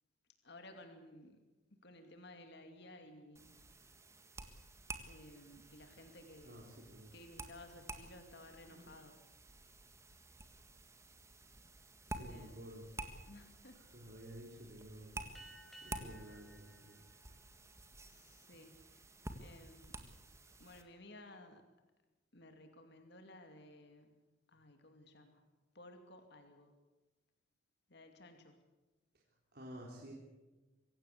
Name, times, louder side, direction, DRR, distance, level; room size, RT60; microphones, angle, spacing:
voice 1, 0.4-1.4 1.7-3.6 5.1-6.7 7.1-9.2 12.3-12.6 13.3-13.8 18.0-19.1 19.4-20.0 20.6-21.7 22.3-24.2 24.5-25.5 25.7-26.8 27.9-28.6, left 1 dB, 60° left, 6 dB, 2.5 m, -56 dB
sound 1, 3.4-20.8, right 2 dB, 15° right, 1.7 m, -51 dB
voice 2, 6.4-7.1 8.7-8.9 12.1-12.9 13.7-15.2 15.8-17.0 29.5-30.1, right 1 dB, 50° right, -2 dB, 3.8 m, -52 dB
sound 2, 15.3-18.3, right 2 dB, ahead, 4.8 m, -59 dB
24.5 x 16.5 x 8.4 m, 1.2 s
head